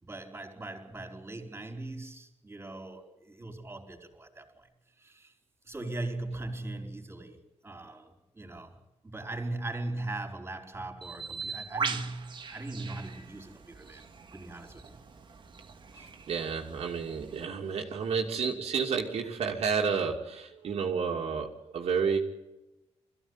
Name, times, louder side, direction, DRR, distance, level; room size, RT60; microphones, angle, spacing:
voice 1, 0.0-4.7 5.0-5.4 5.6-7.4 7.6-8.8 9.0-14.1 14.3-15.0 15.9-16.1, right 2 dB, 20° right, 4.7 m, -40 dB
Bird, 11.0-17.4, right 5 dB, 45° right, 2.0 m, -40 dB
voice 2, 16.3-22.2, right 6 dB, 65° right, 2.8 m, -30 dB
22.0 x 15.5 x 9.9 m
cardioid pair, 90°, 11 cm